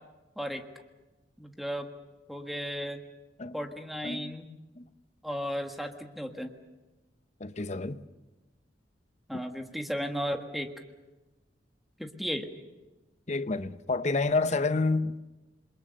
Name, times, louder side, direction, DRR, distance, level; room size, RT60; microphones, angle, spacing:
voice 1, 1.4-1.9 2.3-3.0 3.5-4.4 5.2-6.5 9.3-10.7 12.0-12.5, equal, ahead, 1.6 m, -34 dB
voice 2, 7.4-8.0 13.3-15.2, left 3 dB, 40° left, 0.9 m, -29 dB
28.5 x 22.5 x 6.6 m
head